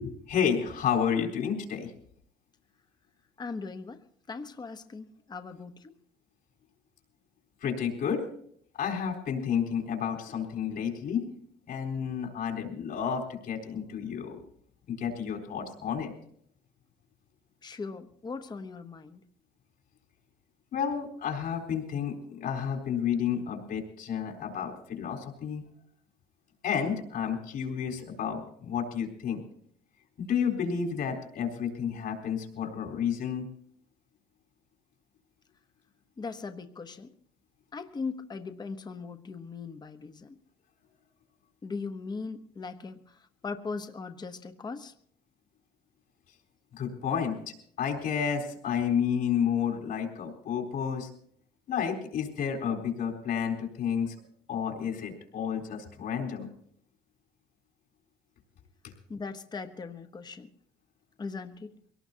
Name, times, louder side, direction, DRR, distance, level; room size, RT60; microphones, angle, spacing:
voice 1, 0.0-1.9 7.6-8.2 8.8-11.3 11.7-14.4 14.9-16.1 20.7-25.6 26.6-29.4 30.2-33.5 46.7-51.1 51.7-54.2 54.5-56.5, left 7 dB, 65° left, 0 dB, 4.0 m, -31 dB
voice 2, 3.4-4.0 4.3-5.9 17.6-19.2 36.2-37.1 37.7-40.4 41.6-44.9 59.1-60.5 61.2-61.7, left 4 dB, 25° left, 9 dB, 0.9 m, -39 dB
23.0 x 18.0 x 2.8 m, 0.65 s
cardioid pair, 110°, 17 cm